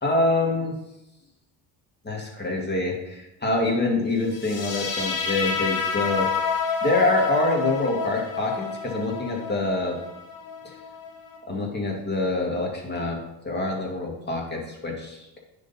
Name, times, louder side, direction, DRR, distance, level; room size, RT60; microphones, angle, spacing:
voice 1, 0.0-0.8 2.0-6.3 6.8-10.0 10.6-10.7 11.5-13.2 13.4-15.4, left 2 dB, 20° left, 0 dB, 2.0 m, -26 dB
sound 1, 4.3-11.4, left 5 dB, 90° left, 1.6 m, -29 dB
9.7 x 3.9 x 4.2 m, 0.93 s
cardioid pair, 95°, 50 cm